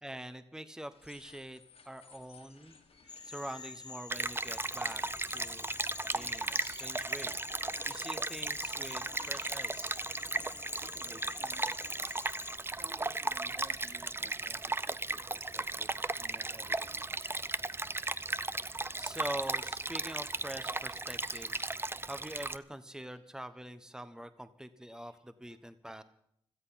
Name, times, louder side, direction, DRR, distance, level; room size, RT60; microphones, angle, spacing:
voice 1, 0.0-2.8 3.2-5.7 6.1-7.4 7.9-9.9 19.0-21.7 22.0-26.0, right 1 dB, 5° right, 11 dB, 1.2 m, -44 dB
sound 1, 0.9-13.6, left 5 dB, 70° left, 2.3 m, -57 dB
Cricket / Frog, 3.1-12.6, left 4 dB, 40° left, 1.5 m, -47 dB
Stream, 4.1-22.6, right 2 dB, 20° right, 0.6 m, -36 dB
voice 2, 10.7-11.7 12.7-17.4 21.9-22.1 23.1-23.2 25.1-25.2, right 3 dB, 45° right, -1 dB, 3.1 m, -56 dB
17.0 x 13.0 x 5.9 m, 0.72 s
cardioid pair, 50°, 10 cm